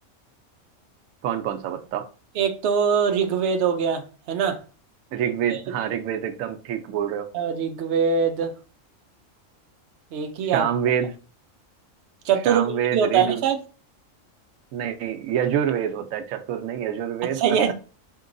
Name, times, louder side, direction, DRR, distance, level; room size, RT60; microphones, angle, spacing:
voice 1, 1.2-2.1 5.1-7.3 10.5-11.1 12.5-13.4 14.7-17.7, right 9 dB, 90° right, 1.0 m, -26 dB
voice 2, 2.4-4.6 5.5-5.6 7.3-8.5 10.1-10.7 12.3-12.6 12.9-13.6 17.3-17.7, right 7 dB, 60° right, 0.8 m, -22 dB
4.5 x 2.9 x 2.5 m
omnidirectional pair, 1.4 m